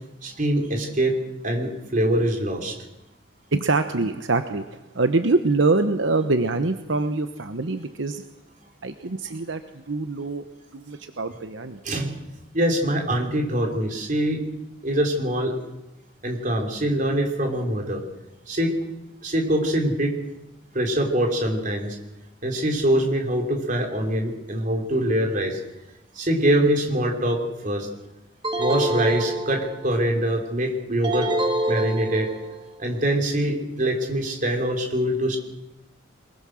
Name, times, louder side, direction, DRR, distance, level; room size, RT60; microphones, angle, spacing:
voice 1, 0.2-2.8 11.8-12.2 12.5-14.4 14.8-15.5 16.2-18.0 18.5-18.8 19.2-20.2 20.7-22.0 22.4-25.6 26.1-27.9 28.6-31.3 31.7-32.3 32.8-35.4, right 1 dB, 40° right, 2 dB, 3.9 m, -24 dB
voice 2, 3.5-8.2 8.8-9.6 9.9-10.5 10.7-11.8, right 3 dB, 70° right, 8 dB, 1.0 m, -24 dB
sound 1, 28.4-30.0 31.0-32.6, right 1 dB, 25° right, 1.8 m, -26 dB
23.0 x 22.0 x 6.4 m, 0.93 s
head